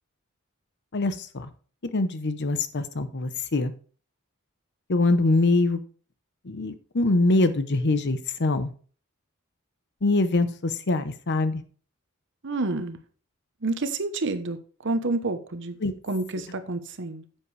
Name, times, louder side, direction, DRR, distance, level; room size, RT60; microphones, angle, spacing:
voice 1, 0.9-1.5 1.9-3.7 4.9-5.8 6.5-8.7 10.0-11.6 15.8-15.9, left 2 dB, 55° left, 0.9 m, -24 dB
voice 2, 12.4-13.0 13.6-14.6 14.8-15.7 16.0-17.2, right 2 dB, 60° right, 1.0 m, -28 dB
10.0 x 7.5 x 3.3 m
head